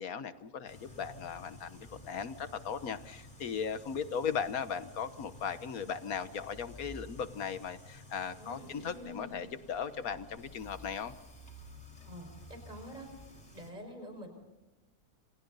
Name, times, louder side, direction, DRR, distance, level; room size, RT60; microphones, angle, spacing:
voice 1, 0.0-11.1, left 7 dB, 80° left, 11 dB, 1.6 m, -37 dB
sound 1, 0.7-13.7, left 1 dB, 25° left, 4.8 m, -52 dB
voice 2, 8.4-9.5 12.0-13.1 13.5-14.3, equal, 30° right, 5 dB, 5.4 m, -47 dB
28.5 x 28.0 x 4.1 m, 1.1 s
omnidirectional pair, 1.5 m